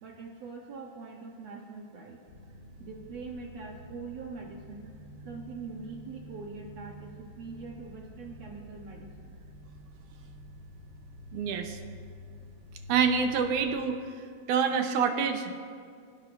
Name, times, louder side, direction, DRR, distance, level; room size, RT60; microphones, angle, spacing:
voice 1, 0.0-2.2 2.8-4.9 5.3-9.4, right 4 dB, 65° right, 0 dB, 2.0 m, -43 dB
sound 1, 2.3-13.8, equal, 55° left, 6.1 m, -48 dB
voice 2, 11.3-11.8 12.9-14.0 14.5-15.6, right 6 dB, 80° right, 5 dB, 2.4 m, -27 dB
25.5 x 16.5 x 2.6 m, 2.2 s
omnidirectional pair, 3.5 m